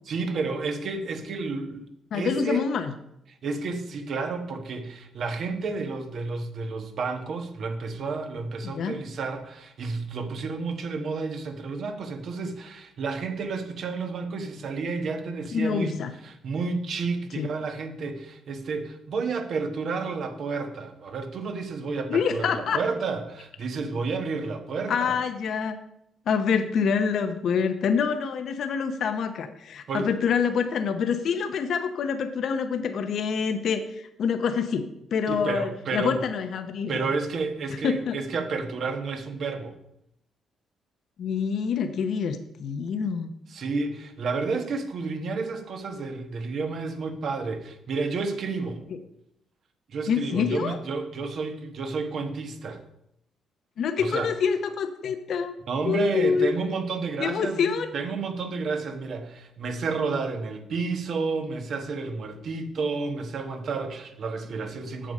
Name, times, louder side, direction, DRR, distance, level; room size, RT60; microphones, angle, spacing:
voice 1, 0.1-2.7 3.4-16.0 16.2-25.2 29.9-30.2 35.3-36.2 36.9-39.8 43.5-48.8 49.9-52.8 54.0-54.3 55.7-65.1, right 4 dB, 60° right, 6 dB, 1.3 m, -31 dB
voice 2, 2.1-2.9 8.6-9.0 15.5-16.1 17.4-17.5 22.1-22.8 24.9-25.8 26.3-37.1 37.8-38.2 41.2-43.3 50.1-50.8 53.8-55.5 55.8-56.5 57.2-57.9, left 6 dB, 65° left, 7 dB, 0.7 m, -26 dB
7.6 x 7.0 x 5.3 m, 0.79 s
cardioid pair, 90°, 0 cm